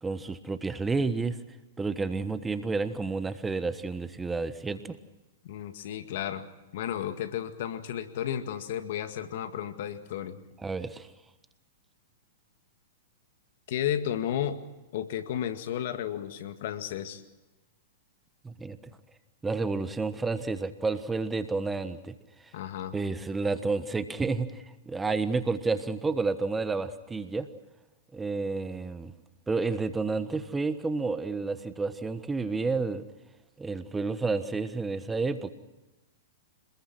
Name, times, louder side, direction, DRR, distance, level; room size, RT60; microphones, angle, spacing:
voice 1, 0.0-1.4 1.8-5.0 10.6-11.1 18.4-18.8 19.4-22.1 22.9-27.5 28.1-29.1 29.5-33.0 33.6-35.5, right 4 dB, 10° right, 11 dB, 1.3 m, -30 dB
voice 2, 5.4-6.4 6.7-10.4 13.7-14.6 14.9-17.2 22.5-23.0, left 10 dB, 60° left, 9 dB, 2.0 m, -33 dB
26.5 x 21.0 x 6.1 m, 1.0 s
hypercardioid pair, 115°, 0 cm